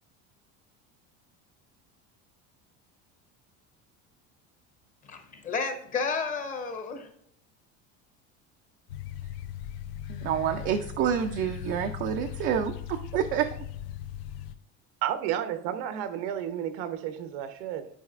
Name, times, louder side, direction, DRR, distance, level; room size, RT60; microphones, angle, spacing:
voice 1, 5.1-7.1, left 5 dB, 25° left, 6 dB, 0.8 m, -32 dB
sound 1, 8.9-14.6, left 11 dB, 75° left, 0.6 m, -39 dB
voice 2, 10.1-13.5, right 9 dB, 35° right, 5 dB, 0.4 m, -28 dB
voice 3, 15.0-17.9, right 10 dB, 85° right, 10 dB, 1.0 m, -32 dB
10.5 x 4.8 x 2.4 m, 0.67 s
cardioid pair, 175°, 32 cm